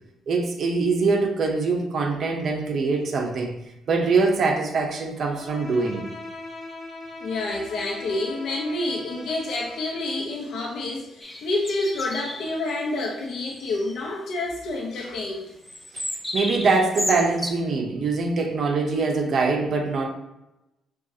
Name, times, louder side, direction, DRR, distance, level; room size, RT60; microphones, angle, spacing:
voice 1, 0.3-6.1 15.9-16.0 16.3-20.1, right 4 dB, 55° right, 3 dB, 0.6 m, -23 dB
Bowed string instrument, 5.2-10.4, left 2 dB, 45° left, 0.9 m, -40 dB
voice 2, 7.2-15.5, left 2 dB, 70° left, -2 dB, 0.7 m, -28 dB
birdsong spring English countryside, 11.2-12.6 13.0-13.2 13.5-14.1 15.6-17.5, left 1 dB, 5° left, 0.5 m, -33 dB
5.9 x 2.4 x 2.7 m, 0.93 s
cardioid pair, 90°, 0 cm